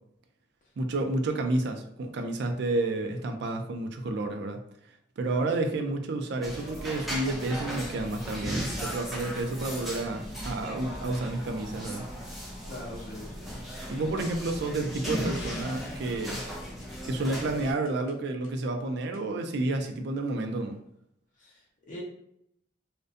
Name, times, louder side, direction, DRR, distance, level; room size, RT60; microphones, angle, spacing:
voice 1, 0.8-4.6 5.2-12.1 13.9-16.4 17.0-20.8, right 2 dB, 60° right, 5 dB, 0.4 m, -30 dB
voice 2, 5.2-5.7 12.7-13.5 21.4-22.0, left 1 dB, 45° left, -4 dB, 0.6 m, -42 dB
sound 1, 6.4-17.7, equal, ahead, 0.4 m, -37 dB
sound 2, 10.3-15.0, equal, 30° right, 1.0 m, -48 dB
sound 3, 14.1-18.1 18.4-18.5 19.1-19.2, left 4 dB, 85° left, 0.5 m, -51 dB
2.5 x 2.1 x 2.5 m, 0.75 s
head